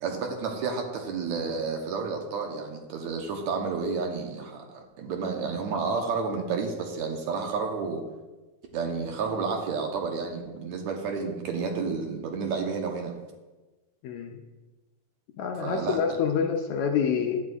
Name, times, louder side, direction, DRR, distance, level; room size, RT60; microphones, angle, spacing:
voice 1, 0.0-8.0 8.7-13.1 15.6-16.0, right 5 dB, 70° right, 2 dB, 2.1 m, -31 dB
voice 2, 14.0-14.4 15.4-17.4, left 7 dB, 75° left, 3 dB, 1.8 m, -27 dB
15.5 x 9.7 x 2.5 m, 1.2 s
omnidirectional pair, 3.8 m